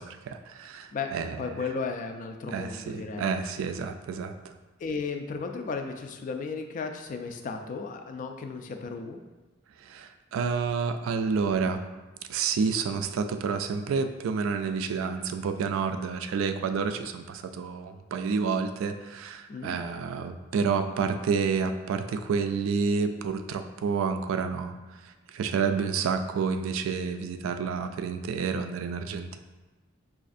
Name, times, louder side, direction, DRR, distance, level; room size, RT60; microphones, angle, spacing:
voice 1, 0.0-1.6 2.5-4.3 9.8-11.8 12.3-24.8 25.0-29.4, right 5 dB, 90° right, 7 dB, 0.3 m, -29 dB
voice 2, 0.9-3.4 4.8-9.2 19.5-19.8, left 4 dB, 40° left, 5 dB, 0.3 m, -35 dB
5.0 x 2.4 x 2.5 m, 1.2 s
head